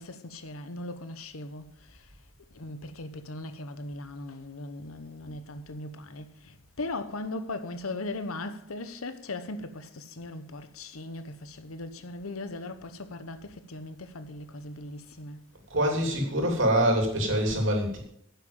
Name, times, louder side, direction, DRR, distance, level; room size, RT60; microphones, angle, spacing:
voice 1, 0.0-2.0 2.5-15.4, left 2 dB, 90° left, 1.0 m, -39 dB
voice 2, 15.7-18.0, right 1 dB, 65° right, 3.1 m, -25 dB
10.5 x 7.4 x 7.3 m
head